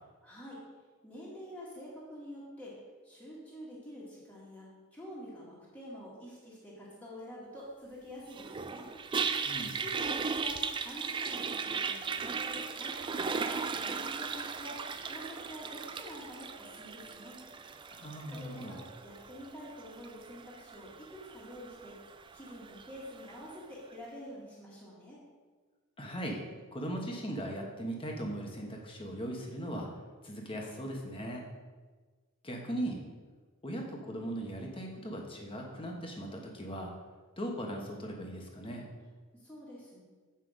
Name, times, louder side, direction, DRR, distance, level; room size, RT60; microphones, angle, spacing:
voice 1, 0.2-0.6 1.0-2.8 3.0-8.9 9.7-13.5 13.8-17.4 18.3-22.0 22.3-25.2 39.3-40.0, equal, 5° left, -7 dB, 1.9 m, -47 dB
Toilet flush, 8.3-23.5, right 5 dB, 20° right, 0.3 m, -37 dB
voice 2, 9.4-9.8 17.9-18.8 26.0-26.4 26.7-29.9 30.2-31.4 32.4-33.0 33.6-36.9 37.4-38.9, right 1 dB, 25° left, 0 dB, 1.2 m, -38 dB
8.1 x 5.8 x 5.0 m, 1.4 s
head